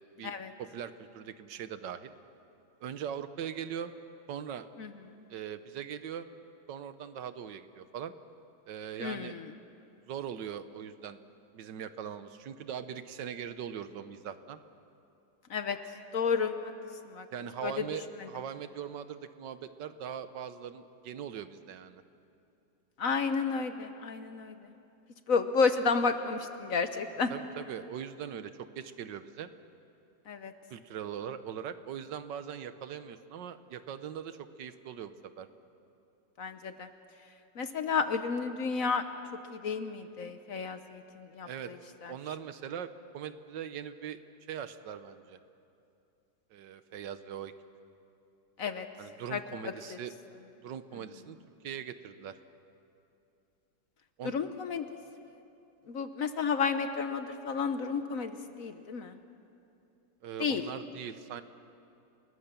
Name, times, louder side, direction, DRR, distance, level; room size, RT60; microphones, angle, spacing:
voice 1, 0.0-0.3 0.6-2.1 2.8-3.9 4.3-4.7 5.3-6.3 6.7-8.1 8.7-9.4 10.1-11.2 11.5-14.6 17.3-22.0 27.3-29.5 30.7-35.5 41.4-41.7 42.1-44.2 44.5-45.4 46.5-47.5 49.0-50.1 50.6-51.4 51.6-52.4 54.2-54.3 60.2-61.4, right 8 dB, 75° right, 11 dB, 1.5 m, -41 dB
voice 2, 9.0-9.4 15.5-15.8 16.1-16.7 17.1-17.3 17.6-17.7 23.0-24.5 25.3-27.3 30.3-30.5 36.4-36.9 37.6-39.0 39.5-41.7 42.0-42.1 48.6-48.9 49.3-49.7 54.2-54.9 55.9-59.2 60.4-60.6, left 5 dB, 55° left, 9 dB, 1.1 m, -31 dB
29.5 x 19.0 x 6.9 m, 2.7 s
omnidirectional pair, 2.0 m